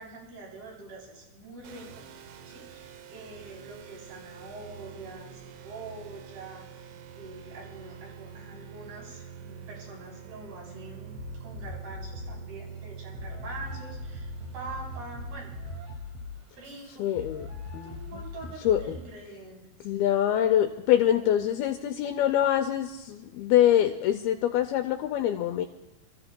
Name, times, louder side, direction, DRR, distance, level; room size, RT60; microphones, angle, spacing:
voice 1, 0.0-2.0 2.4-15.5 16.6-17.0 17.8-19.6, right 3 dB, 70° right, -3 dB, 5.3 m, -45 dB
sound 1, 1.6-16.0, right 7 dB, 85° right, 3.1 m, -45 dB
sound 2, 11.1-12.4 13.1-19.1, left 4 dB, 45° right, 2.9 m, -41 dB
voice 2, 17.0-17.5 17.7-18.0 18.6-18.8 19.8-25.7, left 11 dB, 80° left, 6 dB, 2.2 m, -24 dB
28.5 x 14.0 x 2.2 m, 0.99 s
omnidirectional pair, 4.8 m